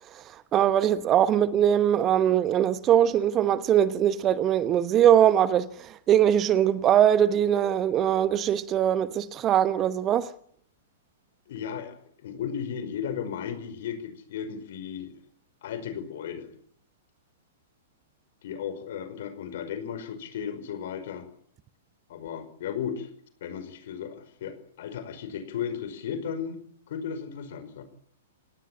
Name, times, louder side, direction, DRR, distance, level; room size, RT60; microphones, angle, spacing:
voice 1, 0.5-10.3, right 10 dB, 25° right, 1.1 m, -22 dB
voice 2, 11.5-15.1 15.6-16.5 18.4-21.3 22.1-23.1 23.4-26.6 26.9-27.8, left 8 dB, 50° left, 5.4 m, -35 dB
29.5 x 18.0 x 8.9 m
figure-of-eight pair, 110°, 0 cm